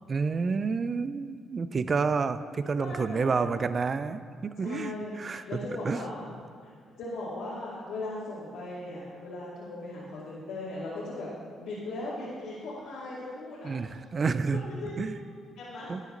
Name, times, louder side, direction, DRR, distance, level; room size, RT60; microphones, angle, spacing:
voice 1, 0.1-6.0 13.6-14.7 15.0-15.2 15.9-16.0, right 4 dB, 40° right, 12 dB, 0.5 m, -29 dB
voice 2, 2.6-3.5 4.6-6.3 6.6-6.7 7.0-11.3 11.6-13.7 14.5-15.3 15.6-15.9, left 2 dB, 85° left, -10 dB, 2.5 m, -38 dB
11.5 x 9.7 x 3.9 m, 2.1 s
cardioid pair, 90°, 0 cm